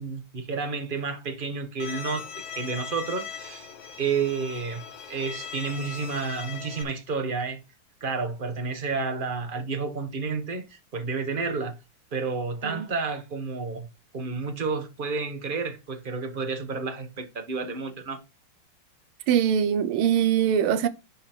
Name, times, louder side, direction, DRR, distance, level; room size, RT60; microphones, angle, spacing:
voice 1, 0.0-3.7 4.0-4.8 5.1-7.6 8.0-11.7 12.1-13.9 14.1-18.2, right 4 dB, 30° right, 1.3 m, -30 dB
Bowed string instrument, 1.8-6.8, left 7 dB, 70° left, 1.8 m, -39 dB
voice 2, 19.3-20.9, right 9 dB, 80° right, 1.7 m, -22 dB
11.0 x 4.1 x 4.4 m
omnidirectional pair, 2.4 m